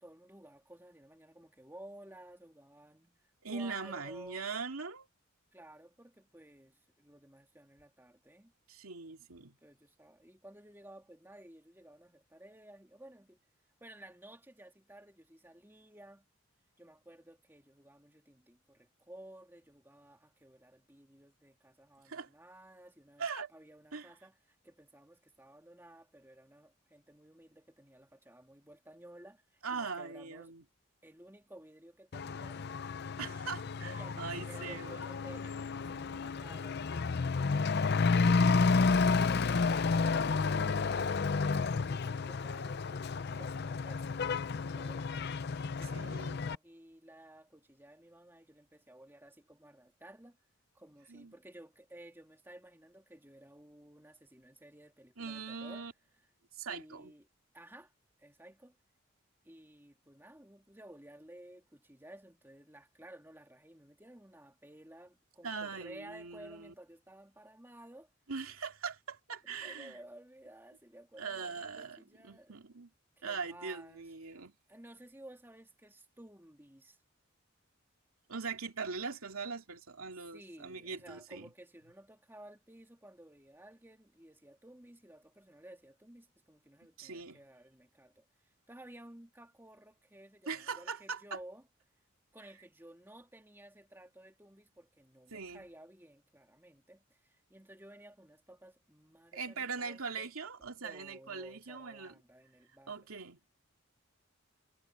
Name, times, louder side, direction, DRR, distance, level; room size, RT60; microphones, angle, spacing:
voice 1, 0.0-4.5 5.5-8.5 9.6-13.4 13.8-16.3 16.8-30.5 31.0-32.7 33.9-38.1 39.4-44.3 44.7-45.3 45.8-50.4 50.7-55.9 56.6-57.3 57.5-57.9 58.2-58.8 59.4-68.1 69.5-72.6 73.2-74.4 74.7-77.0 80.3-91.7 92.3-100.3 100.8-103.2, right 1 dB, 10° right, 2.3 m, -55 dB
voice 2, 3.4-5.1 8.7-9.6 22.0-22.3 23.2-23.5 23.9-24.1 29.6-30.6 33.2-35.1 45.8-46.4 51.1-51.3 55.2-55.9 56.5-57.1 65.4-66.7 68.3-70.0 71.2-72.9 73.2-74.5 78.3-81.5 87.0-87.4 90.5-91.4 95.3-95.6 99.3-102.1 102.9-103.4, right 5 dB, 90° right, 2.6 m, -41 dB
Truck / Accelerating revving vroom, 32.1-46.6, left 4 dB, 50° left, 0.5 m, -31 dB
head